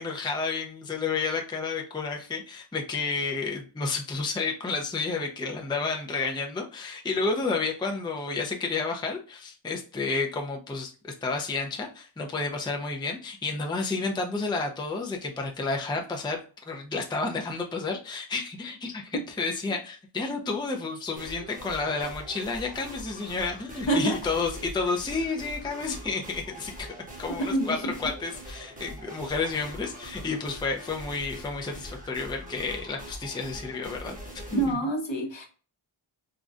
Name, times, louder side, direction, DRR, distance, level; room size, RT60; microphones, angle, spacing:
voice 1, 0.0-16.4 16.7-26.9 27.2-34.8, left 4 dB, 10° left, 2 dB, 0.4 m, -31 dB
sound 1, 21.2-34.7, equal, 15° right, 0.9 m, -43 dB
voice 2, 27.4-27.9 34.5-35.5, right 2 dB, 60° left, 2 dB, 0.9 m, -26 dB
3.8 x 2.2 x 2.4 m, 0.37 s
wide cardioid pair, 55°, 50 cm